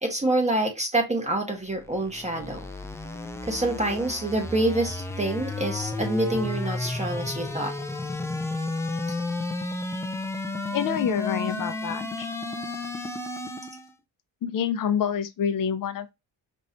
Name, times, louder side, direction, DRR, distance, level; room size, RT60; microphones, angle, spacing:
voice 1, 0.0-2.6 3.4-7.7, right 2 dB, 15° right, 1.0 m, -26 dB
sound 1, 1.7-13.9, left 2 dB, 5° left, 0.5 m, -32 dB
voice 2, 10.7-12.3 14.4-16.1, left 8 dB, 55° left, 0.7 m, -27 dB
5.4 x 3.1 x 2.7 m
cardioid pair, 125°, 39 cm